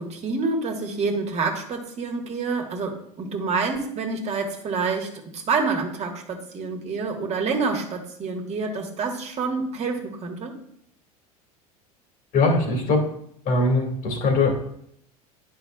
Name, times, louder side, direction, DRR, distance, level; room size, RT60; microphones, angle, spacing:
voice 1, 0.0-10.6, right 4 dB, 35° right, 2 dB, 1.4 m, -27 dB
voice 2, 12.3-13.0 13.5-14.5, left 2 dB, 45° left, 3 dB, 1.9 m, -21 dB
10.5 x 5.3 x 2.3 m, 0.69 s
hypercardioid pair, 75°, 19 cm